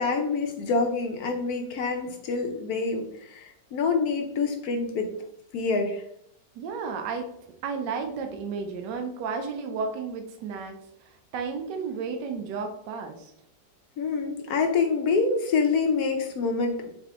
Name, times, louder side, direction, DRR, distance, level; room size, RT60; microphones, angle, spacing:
voice 1, 0.0-5.1 5.5-6.0 14.0-16.9, left 4 dB, 70° left, 3 dB, 1.0 m, -26 dB
voice 2, 6.6-7.3 7.6-10.8 11.3-13.3, right 5 dB, 75° right, 4 dB, 1.3 m, -32 dB
4.0 x 3.4 x 2.9 m, 0.71 s
omnidirectional pair, 1.9 m